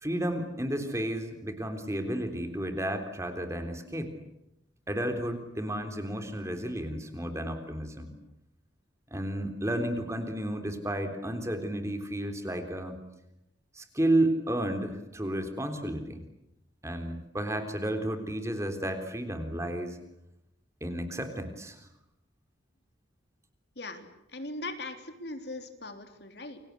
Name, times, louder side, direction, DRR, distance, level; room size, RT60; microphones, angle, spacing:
voice 1, 0.0-4.1 4.9-8.1 9.1-13.0 13.8-16.2 16.8-20.0 20.8-21.8, right 1 dB, 15° right, 7 dB, 3.6 m, -32 dB
voice 2, 23.7-26.6, left 2 dB, 60° left, 7 dB, 3.5 m, -40 dB
29.5 x 24.5 x 8.3 m, 0.84 s
head